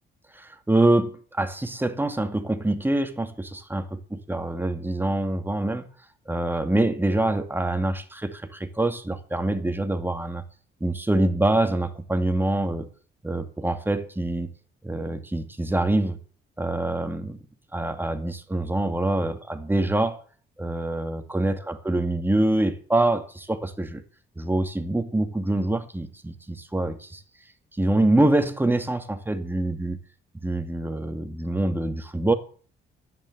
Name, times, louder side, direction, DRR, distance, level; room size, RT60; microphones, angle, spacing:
voice 1, 0.3-5.9 6.3-10.4 10.8-12.9 13.2-14.5 14.8-16.2 16.6-17.4 17.7-20.2 20.6-24.0 24.4-27.2 27.7-30.0 30.3-32.3, right 1 dB, 10° right, 2.4 m, -25 dB
13.5 x 10.0 x 7.9 m
cardioid pair, 90°, 20 cm